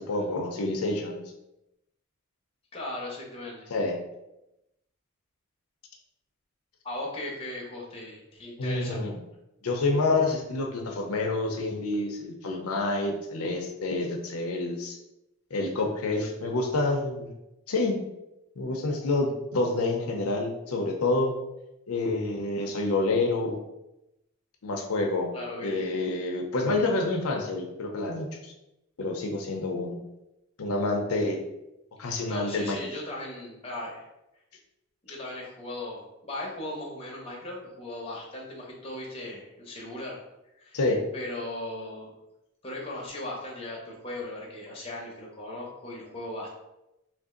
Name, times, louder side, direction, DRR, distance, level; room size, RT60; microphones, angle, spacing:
voice 1, 0.1-1.2 3.7-3.9 8.6-9.2 9.6-15.0 15.5-17.3 17.7-18.0 18.6-21.3 21.9-23.6 24.6-25.3 25.6-28.5 29.0-30.0 30.6-31.4 32.0-32.8 40.7-41.0, left 2 dB, 90° left, 1 dB, 0.6 m, -28 dB
voice 2, 2.7-3.7 6.8-9.0 25.3-26.0 32.1-34.1 35.0-40.2 40.5-40.8 41.1-42.1 42.6-46.5, left 1 dB, 25° left, -3 dB, 0.8 m, -38 dB
3.2 x 2.6 x 3.7 m, 0.90 s
head